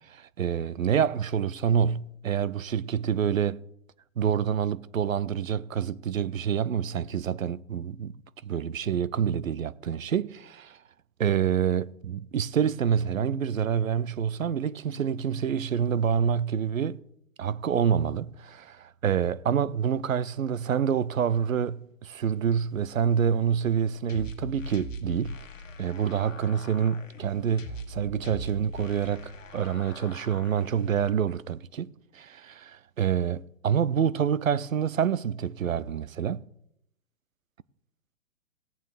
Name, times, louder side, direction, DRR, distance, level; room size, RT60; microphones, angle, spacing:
voice 1, 0.0-3.6 4.2-8.1 8.4-10.8 11.2-17.0 17.4-25.4 25.8-36.4, right 8 dB, 80° right, 0.6 m, -27 dB
sound 1, 24.1-31.1, left 1 dB, 70° left, 1.4 m, -41 dB
17.5 x 8.7 x 3.3 m
figure-of-eight pair, 120°, 40 cm